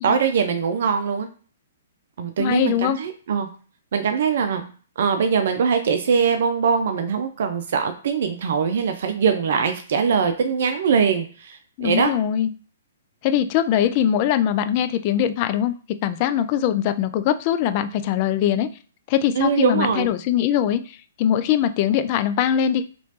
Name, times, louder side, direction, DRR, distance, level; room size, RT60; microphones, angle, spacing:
voice 1, 0.0-1.3 2.2-3.5 3.9-4.6 5.0-12.1 19.3-20.1, right 6 dB, 60° right, 7 dB, 0.5 m, -22 dB
voice 2, 2.4-3.0 11.8-12.5 13.2-15.7 16.0-18.7 19.1-22.8, left 10 dB, 40° left, 11 dB, 0.3 m, -21 dB
3.1 x 3.0 x 2.9 m, 0.40 s
hypercardioid pair, 125°, 0 cm